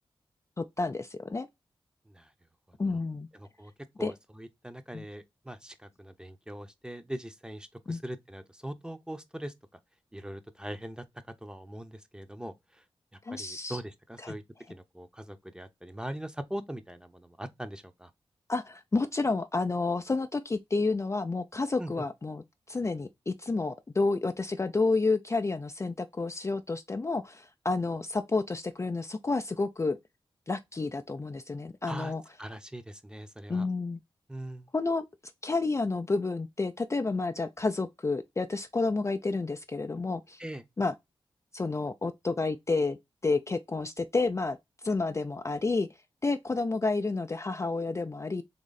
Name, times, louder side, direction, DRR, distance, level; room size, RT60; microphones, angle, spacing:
voice 1, 0.6-1.5 2.8-3.3 4.0-4.1 4.9-5.1 7.9-8.0 13.2-13.8 14.2-14.4 18.5-30.0 30.5-32.2 33.5-34.0 34.7-35.0 35.4-40.4 40.8-40.9 41.5-43.0 43.2-44.6 44.8-45.9 46.2-48.4, left 3 dB, 30° left, 0.4 m, -30 dB
voice 2, 2.7-3.0 3.3-3.7 4.0-9.5 10.1-11.1 11.4-12.5 13.3-14.4 14.7-18.1 21.8-21.9 31.9-32.1 32.4-33.7 34.3-34.7 40.4-40.6, right 1 dB, 10° right, 0.8 m, -41 dB
3.7 x 3.0 x 4.0 m
cardioid pair, 45°, 10 cm